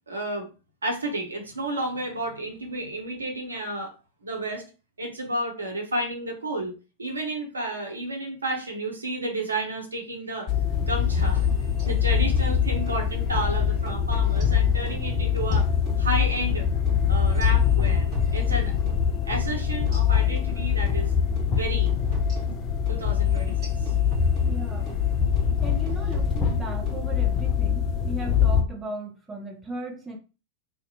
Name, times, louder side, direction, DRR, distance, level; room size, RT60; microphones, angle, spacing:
voice 1, 0.1-0.5 0.8-4.0 4.2-4.6 5.0-10.5 10.8-11.5 11.8-15.7 16.0-16.7 17.1-18.7 19.3-21.1 21.5-21.9 22.9-23.9, right 2 dB, 75° right, 1 dB, 0.7 m, -31 dB
sound 1, 10.5-28.6, left 8 dB, 35° left, 0.4 m, -23 dB
sound 2, 11.2-13.0 13.4-13.5 13.9-15.0 15.4-19.0 19.4-19.5 19.9-21.0 21.4-21.5 21.9-25.0 25.4-25.6 25.9-27.0, right 2 dB, 35° right, 1.3 m, -38 dB
voice 2, 24.4-24.9 25.6-30.2, right 2 dB, 15° right, 1 dB, 0.6 m, -37 dB
2.6 x 2.1 x 2.7 m, 0.32 s
figure-of-eight pair, 90°, 0 cm